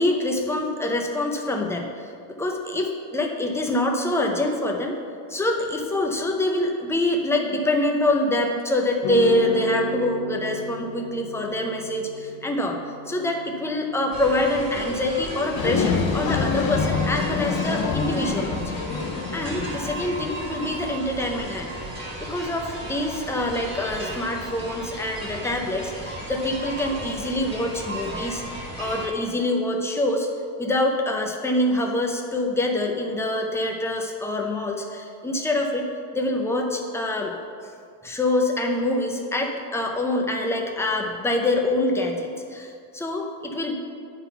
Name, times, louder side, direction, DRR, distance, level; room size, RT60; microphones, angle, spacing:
voice 1, 0.0-1.9 2.4-5.0 5.3-12.8 13.1-18.6 19.3-21.7 22.2-28.4 28.8-30.3 30.6-35.9 36.1-37.3 38.0-43.8, left 1 dB, 5° left, 1 dB, 0.5 m, -25 dB
sound 1, 9.0-17.5, left 1 dB, 85° left, 1.3 m, -35 dB
sound 2, 14.1-29.1, right 1 dB, 15° right, 1.8 m, -35 dB
sound 3, 15.6-20.3, left 5 dB, 55° left, 0.8 m, -26 dB
10.0 x 4.0 x 5.6 m, 2.3 s
cardioid pair, 155°, 45 cm